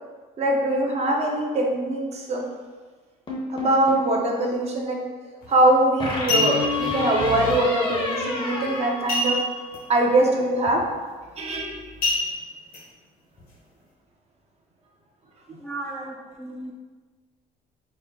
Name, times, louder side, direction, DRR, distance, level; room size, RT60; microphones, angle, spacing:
voice 1, 0.4-2.4 3.5-5.0 5.5-9.4 9.9-10.8 11.4-11.8, right 1 dB, 40° right, -1 dB, 0.7 m, -22 dB
sound 1, 3.3-4.2 6.0-9.8, left 2 dB, 30° left, 0.8 m, -29 dB
sound 2, 5.4-5.6 6.1-6.9 9.1-9.8 10.1-10.2 10.7-10.9 12.0-12.8 13.4-13.5, left 1 dB, 55° left, 1.0 m, -25 dB
voice 2, 15.6-16.7, right 2 dB, 5° left, -3 dB, 0.5 m, -35 dB
4.1 x 2.2 x 3.7 m, 1.4 s
cardioid pair, 110°, 17 cm